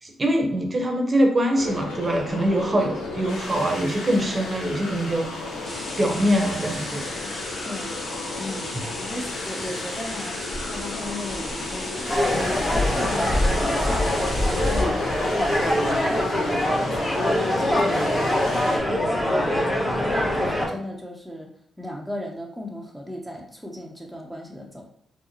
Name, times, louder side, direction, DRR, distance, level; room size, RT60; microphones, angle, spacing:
voice 1, 0.0-5.3 6.0-7.1, equal, 35° right, 2 dB, 0.8 m, -23 dB
sound 1, 1.6-18.8, left 2 dB, 90° left, 0.7 m, -34 dB
sound 2, 5.6-14.8, left 1 dB, 45° left, 1.0 m, -31 dB
voice 2, 7.6-8.0 8.4-12.7 12.9-14.1 14.5-21.5 21.8-24.8, left 1 dB, ahead, -1 dB, 0.8 m, -37 dB
sound 3, 12.1-20.7, left 1 dB, 25° left, 1.3 m, -23 dB
4.5 x 2.0 x 2.9 m, 0.64 s
supercardioid pair, 50°, 0 cm